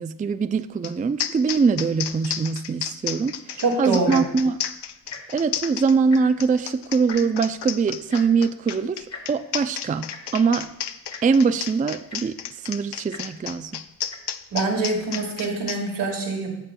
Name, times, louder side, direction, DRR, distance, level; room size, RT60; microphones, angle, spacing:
voice 1, 0.0-4.6 5.3-10.7 11.2-13.8, right 5 dB, 20° right, 11 dB, 0.3 m, -23 dB
sound 1, 0.8-0.9 1.2-15.8, left 10 dB, 75° left, 0.6 m, -32 dB
voice 2, 3.6-4.3 14.5-16.5, right 3 dB, 80° right, -2 dB, 2.2 m, -25 dB
Tick-tock, 4.0-4.4 5.0-5.2 5.5-5.7 5.9-6.5 7.1-7.2 8.1-8.2 9.1-9.2 10.1-10.2 11.1-11.2 11.8-11.9 12.1-12.4 13.1-13.2 14.1-14.2 15.0-15.2 15.9-16.0, left 3 dB, 35° left, 1.8 m, -39 dB
14.0 x 6.8 x 2.3 m, 0.84 s
cardioid pair, 50°, 41 cm